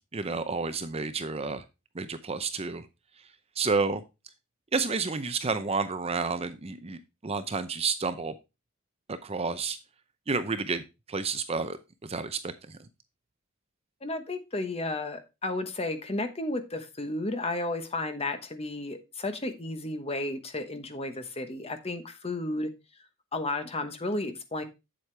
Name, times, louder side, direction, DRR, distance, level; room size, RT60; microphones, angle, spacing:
voice 1, 0.1-1.6 1.9-2.9 3.6-4.0 4.7-8.3 9.1-9.8 10.3-10.8 11.1-12.8, right 4 dB, 25° right, 11 dB, 0.6 m, -30 dB
voice 2, 14.0-22.7 23.3-24.6, left 2 dB, 25° left, 8 dB, 1.1 m, -33 dB
8.2 x 7.7 x 3.3 m, 0.25 s
head